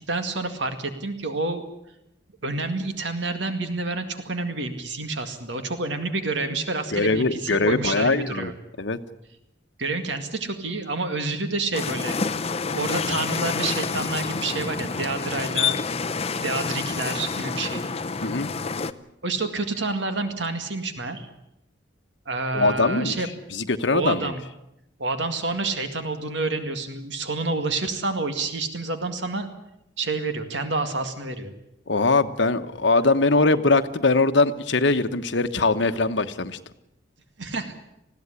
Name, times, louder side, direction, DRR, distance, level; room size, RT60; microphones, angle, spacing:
voice 1, 0.1-1.6 2.4-8.5 9.8-12.2 12.7-15.8 16.4-17.8 19.2-21.3 22.3-23.3 23.9-24.4 25.0-29.5 30.0-31.5 37.4-37.7, right 3 dB, 70° right, 7 dB, 2.0 m, -28 dB
voice 2, 6.9-8.5 8.8-9.0 18.2-18.5 22.5-23.2 23.5-24.3 31.9-36.6, left 3 dB, 65° left, 9 dB, 1.1 m, -21 dB
sound 1, 11.7-18.9, left 5 dB, 30° left, 0.7 m, -28 dB
20.5 x 15.5 x 10.0 m, 0.84 s
head